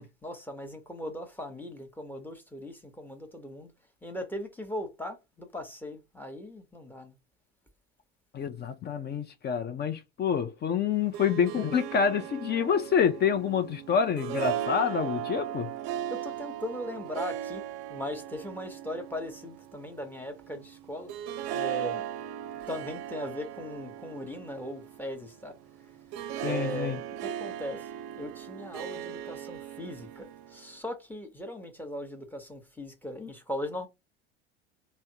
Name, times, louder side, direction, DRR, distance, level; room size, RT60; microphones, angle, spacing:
voice 1, 0.0-3.7 4.0-7.1 16.1-17.6 17.9-21.1 21.5-22.1 22.7-25.5 26.4-27.0 27.2-27.9 28.2-33.9, left 1 dB, 5° left, 1.0 m, -39 dB
voice 2, 8.3-15.7 26.4-27.0, left 7 dB, 30° left, 0.5 m, -27 dB
Harp, 10.9-30.7, right 11 dB, 55° right, 0.5 m, -38 dB
3.3 x 2.1 x 2.8 m
hypercardioid pair, 80°, 32 cm